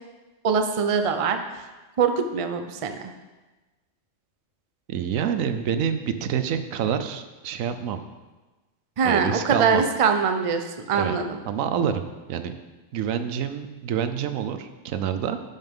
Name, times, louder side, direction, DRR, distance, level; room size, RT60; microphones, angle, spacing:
voice 1, 0.4-1.7 2.0-3.0 9.0-11.4, right 6 dB, 50° right, 6 dB, 0.4 m, -23 dB
voice 2, 4.9-8.0 9.0-9.8 10.9-11.2 11.4-12.0 12.3-12.6 12.9-15.4, right 8 dB, 80° right, 9 dB, 1.0 m, -27 dB
11.0 x 5.6 x 3.6 m, 1.2 s
omnidirectional pair, 1.4 m